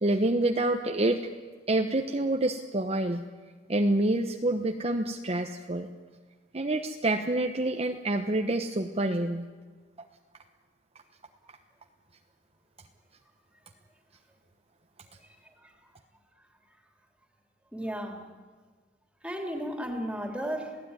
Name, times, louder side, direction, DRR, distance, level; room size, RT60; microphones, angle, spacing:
voice 1, 0.0-1.2 1.7-3.2 3.7-5.9 6.5-9.5, right 1 dB, 35° right, 4 dB, 1.1 m, -27 dB
voice 2, 15.2-15.7 17.7-18.3 19.2-20.8, equal, 5° right, 3 dB, 3.3 m, -35 dB
28.0 x 17.0 x 9.8 m, 1.5 s
head